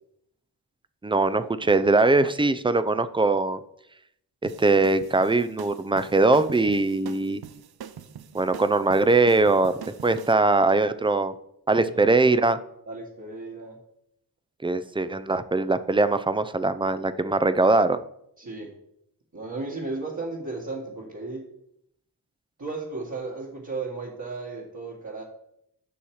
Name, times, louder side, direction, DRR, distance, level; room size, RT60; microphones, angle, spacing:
voice 1, 1.0-3.6 4.4-7.4 8.3-11.3 11.7-12.6 14.6-18.0, right 3 dB, 10° right, 12 dB, 0.5 m, -21 dB
sound 1, 4.4-10.3, right 9 dB, 65° right, 0.6 m, -43 dB
voice 2, 11.8-12.3 12.9-13.8 18.4-18.7 19.3-21.4 22.6-25.2, right 3 dB, 45° right, -5 dB, 1.8 m, -35 dB
7.1 x 5.6 x 4.8 m, 0.75 s
cardioid pair, 50°, 41 cm